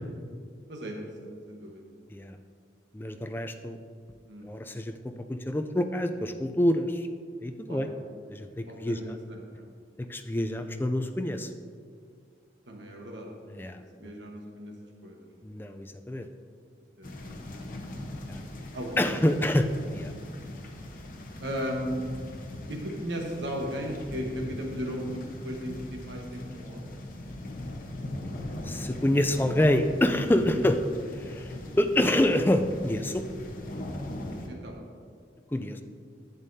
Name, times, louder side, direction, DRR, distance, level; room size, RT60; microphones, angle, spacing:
voice 1, 0.7-1.8 4.2-4.5 7.7-7.9 8.7-9.0 9.3-9.7 12.7-13.3 14.0-14.7 15.0-15.3 17.0-17.7 18.7-19.3 21.4-22.0 22.7-26.9 30.5-30.7 34.5-34.7, equal, 85° right, 0 dB, 1.2 m, -36 dB
voice 2, 2.9-3.8 4.4-7.1 7.4-7.9 8.3-9.2 10.1-11.5 13.5-14.1 15.4-16.3 18.1-18.4 19.0-20.1 28.6-30.8 31.2-33.2 35.5-35.8, left 1 dB, 10° left, 7 dB, 0.4 m, -27 dB
sound 1, 17.0-34.5, left 1 dB, 50° left, 0.9 m, -40 dB
11.0 x 8.2 x 2.7 m, 2.1 s
head